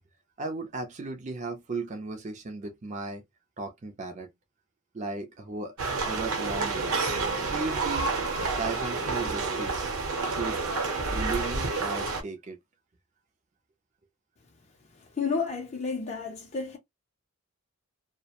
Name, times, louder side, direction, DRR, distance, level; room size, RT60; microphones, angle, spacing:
voice 1, 0.4-3.2 3.6-4.3 4.9-5.7 6.1-7.0 7.4-8.1 8.6-9.9 10.3-10.6 11.1-12.6, right 3 dB, 35° right, 0.4 m, -36 dB
sound 1, 5.8-12.2, right 3 dB, 70° right, 0.8 m, -29 dB
voice 2, 15.2-16.8, left 5 dB, 30° left, 0.4 m, -31 dB
2.3 x 2.0 x 2.8 m
head